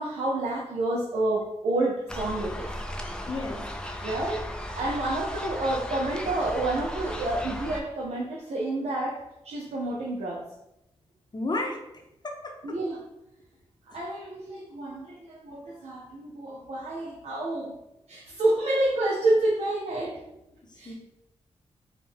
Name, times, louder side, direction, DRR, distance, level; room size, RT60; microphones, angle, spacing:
voice 1, 0.0-2.7 4.0-4.5 4.8-10.4 12.6-13.0 13.9-17.8 18.1-20.2 20.7-20.9, right 2 dB, 70° right, -4 dB, 0.6 m, -29 dB
sound 1, 2.1-7.8, equal, 5° left, 0.5 m, -36 dB
voice 2, 3.3-3.6 11.3-11.8 12.2-12.5 20.7-20.9, left 2 dB, 40° left, 1 dB, 0.8 m, -32 dB
3.5 x 2.3 x 3.5 m, 0.86 s
cardioid pair, 55°, 12 cm